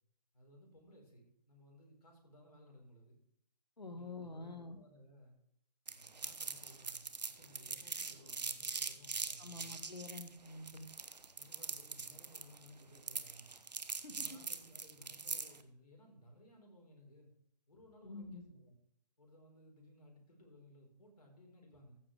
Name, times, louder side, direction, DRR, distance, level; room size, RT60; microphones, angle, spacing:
voice 1, 0.3-3.2 3.9-5.4 5.9-9.5 11.4-13.5 14.1-17.3 17.7-18.7 19.2-22.0, equal, 70° left, 1 dB, 4.4 m, -60 dB
voice 2, 3.8-4.8 9.4-10.9 14.0-14.4 18.0-18.4, left 2 dB, 85° left, 7 dB, 1.8 m, -47 dB
sound 1, 5.9-15.6, right 4 dB, 80° right, 1.0 m, -42 dB
14.0 x 7.6 x 3.4 m, 0.71 s
figure-of-eight pair, 145°, 21 cm